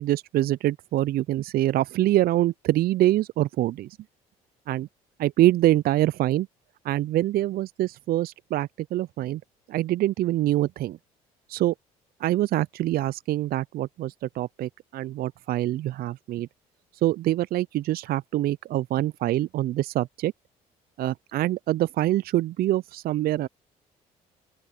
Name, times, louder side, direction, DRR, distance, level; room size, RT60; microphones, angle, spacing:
voice 1, 0.0-4.0 4.7-4.9 5.2-6.5 6.8-9.4 9.7-11.0 11.5-11.7 12.2-16.5 16.9-20.3 21.0-23.5, right 14 dB, 55° right, 0.6 m, -25 dB
open air
hypercardioid pair, 50°, 19 cm